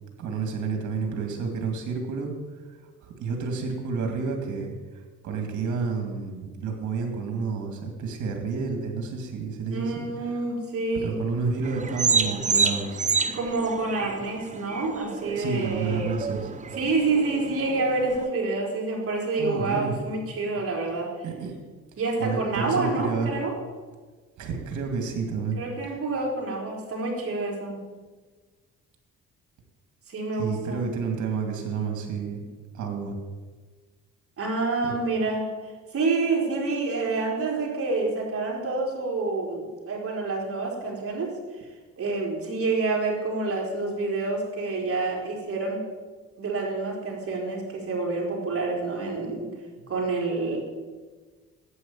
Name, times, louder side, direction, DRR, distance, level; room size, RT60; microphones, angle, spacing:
voice 1, 0.2-2.3 3.0-4.7 5.2-10.1 11.0-13.0 15.4-16.5 19.4-19.9 21.2-21.6 22.2-23.4 24.4-25.6 30.3-32.4 32.7-33.2 34.8-35.0, right 5 dB, 75° right, 3 dB, 2.4 m, -30 dB
voice 2, 9.7-11.2 13.3-16.1 16.8-21.1 22.0-23.6 25.6-27.8 30.1-30.9 34.4-41.4 42.0-45.8 46.4-49.5 49.9-50.6, right 3 dB, 50° right, -2 dB, 4.0 m, -28 dB
sound 1, 11.6-18.3, right 5 dB, 25° right, 0.7 m, -29 dB
11.5 x 8.6 x 7.4 m, 1.4 s
cardioid pair, 90°, 30 cm